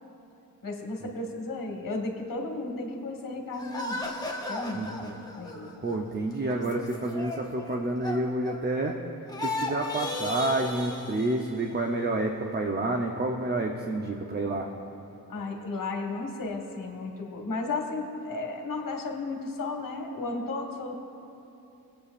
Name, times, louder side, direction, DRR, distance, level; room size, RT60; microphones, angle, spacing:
voice 1, 0.6-4.0 4.5-5.7 15.3-20.9, left 3 dB, 60° left, 1 dB, 1.7 m, -34 dB
sound 1, 3.6-9.0 9.3-11.8, left 2 dB, 10° left, 1.3 m, -36 dB
voice 2, 4.7-5.1 5.8-9.0 9.4-14.7, right 2 dB, 30° right, 1 dB, 0.8 m, -29 dB
18.5 x 8.6 x 2.6 m, 2.9 s
cardioid pair, 65°, 36 cm